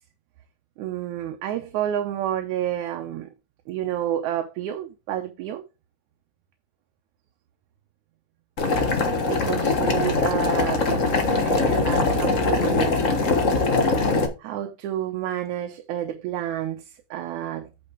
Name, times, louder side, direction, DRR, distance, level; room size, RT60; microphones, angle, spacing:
voice 1, 0.8-3.3 3.7-5.6 9.2-11.2 11.4-13.1 14.4-17.7, right 11 dB, 75° right, 2.2 m, -30 dB
Boiling, 8.6-14.3, left 3 dB, 45° left, 1.0 m, -22 dB
8.6 x 5.8 x 4.4 m
omnidirectional pair, 3.5 m